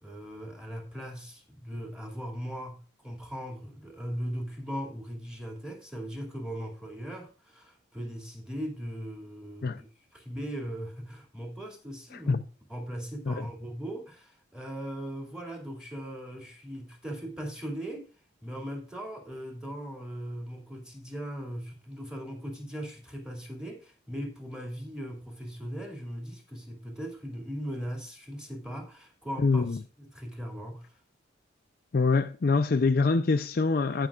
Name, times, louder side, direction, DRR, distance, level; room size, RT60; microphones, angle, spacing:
voice 1, 0.0-12.4 12.7-18.1 18.4-30.9, equal, 5° right, 2.2 m, -39 dB
voice 2, 29.4-29.8 31.9-34.1, left 4 dB, 50° left, 0.5 m, -24 dB
17.0 x 5.7 x 2.4 m
head